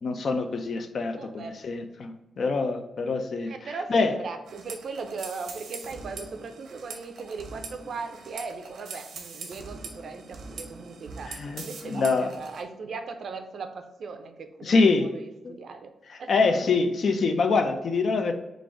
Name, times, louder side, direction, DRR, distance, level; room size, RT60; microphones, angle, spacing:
voice 1, 0.0-3.5 3.9-4.1 11.3-12.3 14.6-15.1 15.4-15.6 16.1-18.3, left 4 dB, 55° left, 6 dB, 0.5 m, -25 dB
voice 2, 1.2-1.6 3.5-16.6, right 4 dB, 60° right, 6 dB, 0.5 m, -38 dB
sound 1, 4.5-12.6, right 4 dB, 85° right, 0.8 m, -42 dB
4.0 x 2.5 x 4.7 m, 1.0 s
wide cardioid pair, 130°, 0 cm